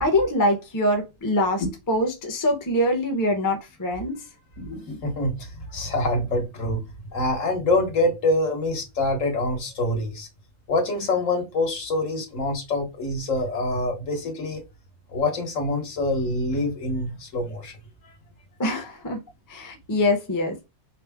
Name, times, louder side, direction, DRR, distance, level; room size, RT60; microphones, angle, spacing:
voice 1, 0.0-4.2 18.6-19.2 19.5-20.6, left 1 dB, 20° left, 0.7 m, -24 dB
voice 2, 4.6-10.3 10.7-14.6 15.1-17.8, left 2 dB, 65° left, 1.5 m, -25 dB
5.0 x 2.1 x 3.5 m
omnidirectional pair, 1.5 m